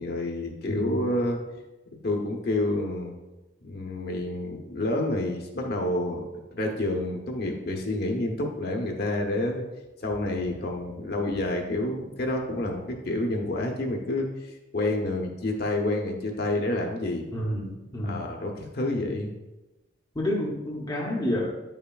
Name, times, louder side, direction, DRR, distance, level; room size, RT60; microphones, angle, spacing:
voice 1, 0.0-1.4 2.0-3.1 3.6-6.2 6.5-9.6 10.0-17.2 18.0-19.3, left 1 dB, 50° left, 1 dB, 0.8 m, -29 dB
voice 2, 0.7-1.1 17.3-18.2 20.1-21.5, left 1 dB, 20° left, -2 dB, 0.8 m, -29 dB
9.3 x 5.6 x 2.3 m, 1.1 s
head